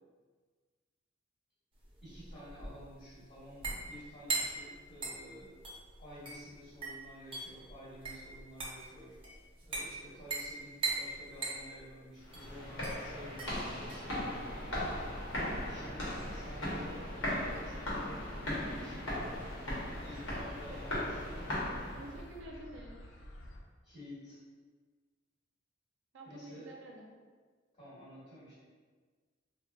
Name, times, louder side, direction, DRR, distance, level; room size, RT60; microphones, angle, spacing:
sound 1, 1.8-15.8, right 3 dB, 30° right, 0.6 m, -41 dB
voice 1, 2.0-5.6 6.0-9.2 9.6-14.9 15.6-19.5 20.0-21.4 21.8-22.0 23.8-24.4 26.2-26.7 27.7-28.5, equal, 40° left, -11 dB, 1.4 m, -51 dB
sound 2, 12.2-22.2, left 1 dB, 85° left, 0.9 m, -38 dB
sound 3, 14.5-23.6, left 1 dB, 65° left, 0.3 m, -50 dB
voice 2, 22.0-22.9 26.1-27.1, right 1 dB, 75° right, -1 dB, 0.5 m, -49 dB
3.8 x 2.1 x 2.2 m, 1.5 s
head